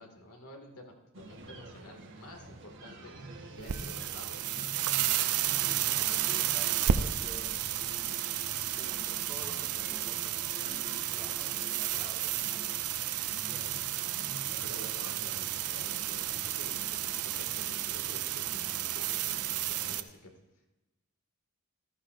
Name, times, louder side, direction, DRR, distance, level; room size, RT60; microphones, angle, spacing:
voice 1, 0.0-3.3 3.6-4.5 13.8-20.3, left 1 dB, 85° left, 2 dB, 2.2 m, -51 dB
sound 1, 1.1-19.9, right 2 dB, 55° right, 1.2 m, -47 dB
sound 2, 3.6-20.0, right 11 dB, 90° right, 0.6 m, -32 dB
voice 2, 5.4-7.6 8.7-10.4 10.6-12.7, equal, 10° left, -4 dB, 1.5 m, -51 dB
15.0 x 13.0 x 2.6 m, 1.1 s
head